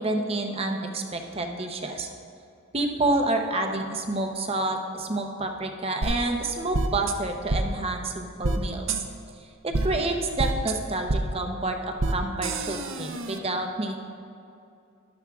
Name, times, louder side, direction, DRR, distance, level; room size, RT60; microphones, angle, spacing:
voice 1, 0.0-2.1 2.7-9.0 9.4-13.9, right 2 dB, 25° right, 4 dB, 0.7 m, -29 dB
sound 1, 6.0-6.1 6.7-7.1 7.5-7.6 8.4-8.6 8.9-9.0 9.7-9.9 10.4-10.7 11.1-11.2 12.0-12.1 12.4-13.4, right 3 dB, 65° right, 0.7 m, -26 dB
13.0 x 11.5 x 2.4 m, 2.6 s
head